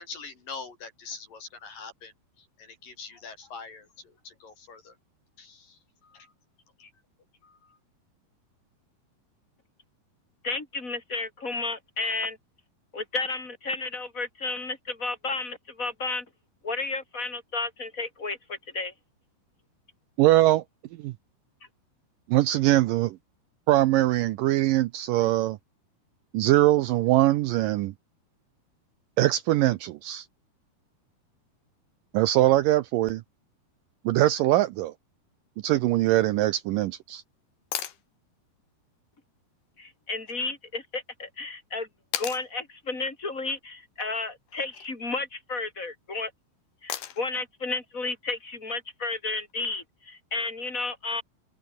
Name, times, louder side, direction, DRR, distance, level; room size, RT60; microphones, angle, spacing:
voice 1, 0.0-5.0 5.4-6.3 6.8-6.9 7.4-7.8, left 5 dB, 55° left, 6.9 m, -44 dB
voice 2, 10.4-12.4 12.9-16.2 16.6-18.9 39.8-41.9 42.2-46.3 46.8-51.2, left 3 dB, 20° left, 4.9 m, -32 dB
voice 3, 20.2-20.6 21.0-21.1 22.3-23.2 23.7-25.6 26.3-27.9 29.2-30.3 32.1-33.2 34.1-34.9 35.6-37.2, right 16 dB, 90° right, 1.9 m, -22 dB
sound 1, 37.7-38.0 40.3-40.4 42.1-42.5 44.5-44.9 46.9-47.4 49.5-49.6, left 11 dB, 70° left, 3.7 m, -34 dB
omnidirectional pair, 4.7 m